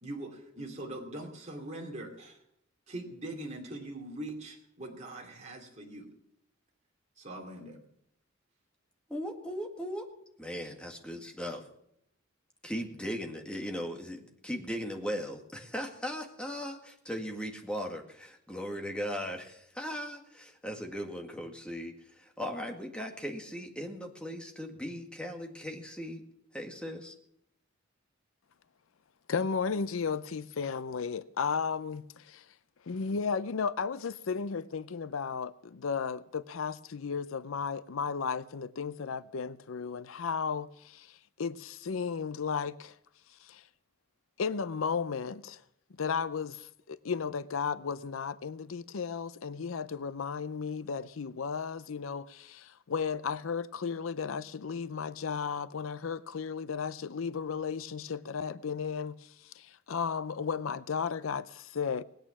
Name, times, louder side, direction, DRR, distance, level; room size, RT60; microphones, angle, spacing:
voice 1, 0.0-2.4 2.9-6.1 7.2-7.8, right 1 dB, 35° right, 2.7 m, -42 dB
voice 2, 9.1-10.1 10.4-11.6 12.6-26.2 26.5-27.1, equal, 5° left, 1.9 m, -38 dB
voice 3, 29.3-32.5 32.9-43.0 43.4-43.6 44.4-45.6 46.0-62.0, left 5 dB, 75° left, 0.5 m, -34 dB
19.5 x 9.1 x 7.2 m
head